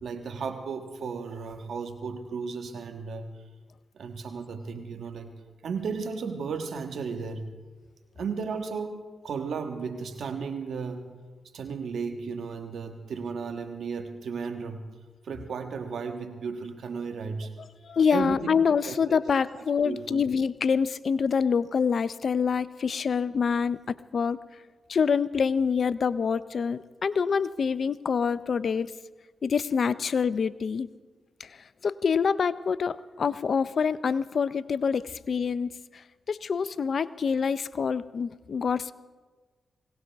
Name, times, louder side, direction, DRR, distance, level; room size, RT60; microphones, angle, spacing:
voice 1, 0.0-3.3 3.9-5.3 5.6-7.5 8.1-11.1 11.5-14.8 15.2-17.5 18.1-18.5 18.9-19.2 19.8-20.2, right 5 dB, 75° right, 6 dB, 1.4 m, -34 dB
voice 2, 17.8-24.4 24.9-28.9 29.4-30.9 31.4-31.6 31.8-36.0 36.3-38.9, left 6 dB, 65° left, 17 dB, 0.5 m, -26 dB
21.5 x 18.0 x 3.5 m, 1.4 s
supercardioid pair, 40°, 0 cm